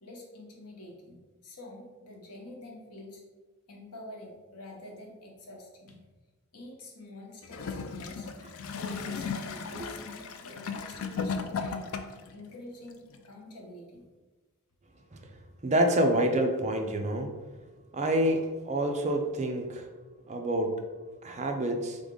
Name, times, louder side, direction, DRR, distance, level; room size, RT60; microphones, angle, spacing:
voice 1, 0.0-3.2 3.7-6.0 6.5-8.3 8.7-11.8 12.3-14.0, left 1 dB, 90° left, 0 dB, 1.0 m, -47 dB
Gurgling / Toilet flush, 7.4-12.3 13.1-13.2, left 5 dB, 65° left, 0.4 m, -36 dB
voice 2, 15.6-17.3 17.9-19.9 20.3-20.8 21.2-22.0, right 1 dB, 30° right, 4 dB, 0.5 m, -27 dB
3.7 x 3.5 x 3.7 m, 1.2 s
head